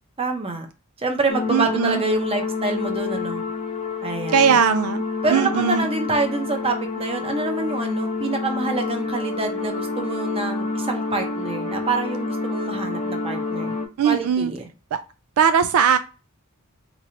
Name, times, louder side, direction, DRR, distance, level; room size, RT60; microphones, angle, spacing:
voice 1, 0.2-0.7 1.0-3.4 4.0-4.6 5.2-13.7 14.0-14.7, right 3 dB, 25° right, 4 dB, 0.8 m, -26 dB
sound 1, 1.3-13.9, left 3 dB, 30° left, 0.7 m, -28 dB
voice 2, 1.5-2.0 4.3-5.0 5.3-5.9 14.0-14.5 14.9-15.0 15.4-16.0, right 7 dB, 70° right, 10 dB, 0.3 m, -19 dB
3.8 x 3.0 x 2.7 m, 0.33 s
head